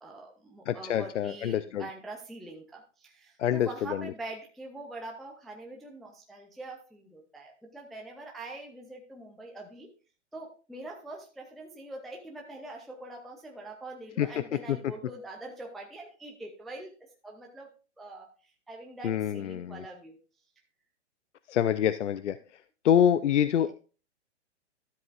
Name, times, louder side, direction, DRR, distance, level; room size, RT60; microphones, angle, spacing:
voice 1, 0.0-9.9 10.3-16.9 17.2-17.7 18.0-20.2, right 2 dB, ahead, 0 dB, 0.3 m, -44 dB
voice 2, 0.7-1.9 3.4-4.1 14.2-14.3 14.7-14.8 19.0-19.8 21.5-22.4 22.8-23.7, left 9 dB, 75° left, 13 dB, 0.6 m, -26 dB
12.5 x 7.7 x 2.4 m, 0.37 s
hypercardioid pair, 130°, 36 cm